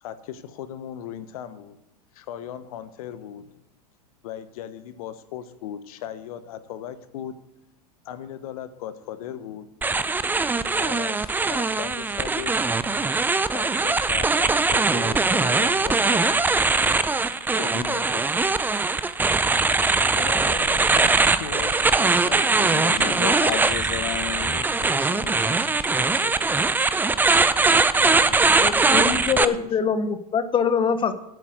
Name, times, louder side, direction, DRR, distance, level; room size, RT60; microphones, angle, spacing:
voice 1, 0.0-1.8 2.1-3.6 4.2-7.4 8.0-9.7 10.8-12.6 13.5-16.4 17.6-18.3 18.7-19.3 20.2-23.6 27.9-29.7, left 10 dB, 60° left, 12 dB, 1.1 m, -37 dB
sound 1, 9.8-29.4, right 3 dB, 10° right, 0.6 m, -21 dB
voice 2, 22.8-26.6, left 18 dB, 40° left, 20 dB, 0.5 m, -34 dB
voice 3, 28.6-31.1, left 6 dB, 25° left, 12 dB, 1.1 m, -24 dB
8.4 x 8.3 x 8.0 m, 0.84 s
figure-of-eight pair, 90°, 21 cm